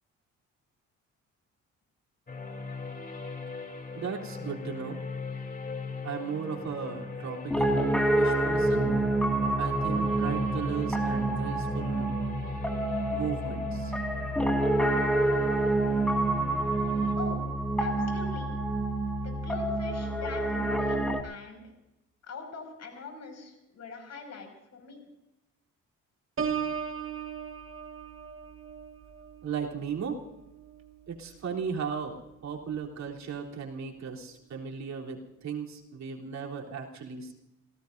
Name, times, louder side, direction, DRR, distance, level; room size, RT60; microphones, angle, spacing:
sound 1, 2.3-17.2, left 4 dB, 30° left, 2.9 m, -39 dB
voice 1, 3.9-5.0 6.0-9.0 9.6-12.1 13.1-13.9 29.4-30.2 31.1-37.3, right 6 dB, 65° right, -1 dB, 3.6 m, -36 dB
Piano, 7.5-21.2, right 2 dB, 5° left, 2.1 m, -27 dB
voice 2, 17.8-18.5 19.2-21.6 22.2-25.0, left 4 dB, 60° left, 4 dB, 5.9 m, -43 dB
Piano 2, 26.4-32.0 32.5-32.8, right 7 dB, 45° right, 1.8 m, -38 dB
28.0 x 17.5 x 2.7 m, 0.89 s
cardioid pair, 90°, 30 cm